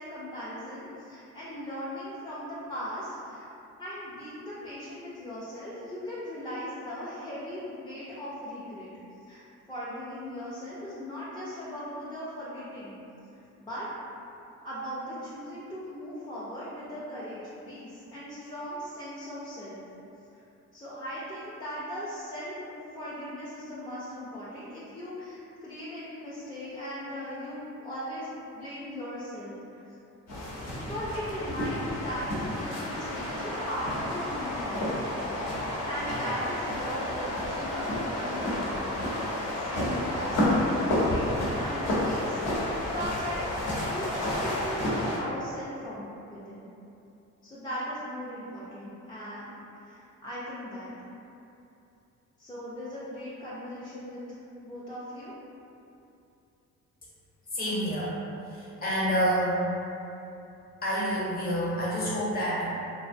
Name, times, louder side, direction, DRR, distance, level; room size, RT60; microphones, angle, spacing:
voice 1, 0.0-3.5 3.8-8.9 9.3-13.0 13.3-13.9 14.6-19.8 20.3-20.4 20.7-29.8 30.7-38.9 39.3-46.7 47.4-50.9 52.4-54.2 54.6-55.3, equal, 15° left, -10 dB, 0.4 m, -38 dB
sound 1, 30.3-45.2, left 1 dB, 60° left, 0.8 m, -30 dB
voice 2, 57.5-58.2 58.4-59.6 60.8-62.6, equal, 30° left, -8 dB, 0.8 m, -28 dB
2.7 x 2.0 x 2.5 m, 2.8 s
cardioid pair, 90°, 30 cm